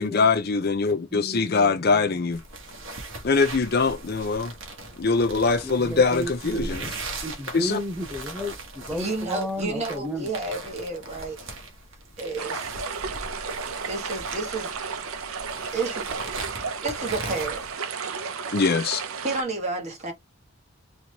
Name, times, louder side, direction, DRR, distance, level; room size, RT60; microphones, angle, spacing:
voice 1, 0.0-2.4 3.2-4.5 5.0-6.9 7.5-7.8 18.5-19.0, left 4 dB, 45° left, 0.6 m, -23 dB
voice 2, 0.9-2.1 5.6-6.7 7.2-10.3, equal, 5° right, 0.7 m, -33 dB
sound 1, 2.3-17.7, right 2 dB, 60° right, 1.3 m, -39 dB
voice 3, 8.9-11.4 12.2-12.7 13.8-14.7 15.7-16.1 16.8-17.7 19.2-20.1, right 3 dB, 30° right, 1.6 m, -31 dB
sound 2, 12.4-19.4, right 5 dB, 75° right, 0.7 m, -33 dB
4.2 x 3.2 x 2.9 m
head